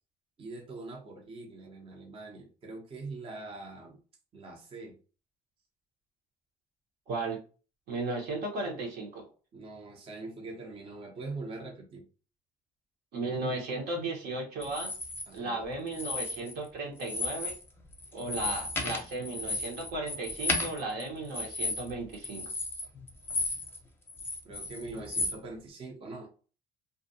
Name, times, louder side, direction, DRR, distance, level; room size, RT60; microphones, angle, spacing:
voice 1, 0.4-4.0 4.3-5.0 9.5-12.0 15.3-15.6 24.4-26.3, right 3 dB, 35° right, 1 dB, 0.6 m, -43 dB
voice 2, 7.1-7.4 7.9-9.2 13.1-14.9 15.3-17.5 18.1-22.5, right 2 dB, 75° right, 1 dB, 1.0 m, -35 dB
sound 1, 14.6-15.2 15.9-16.7 17.0-17.6 17.9-23.8 24.1-25.4, left 3 dB, 15° left, 0.7 m, -34 dB
2.5 x 2.2 x 2.6 m, 0.36 s
cardioid pair, 110°, 17 cm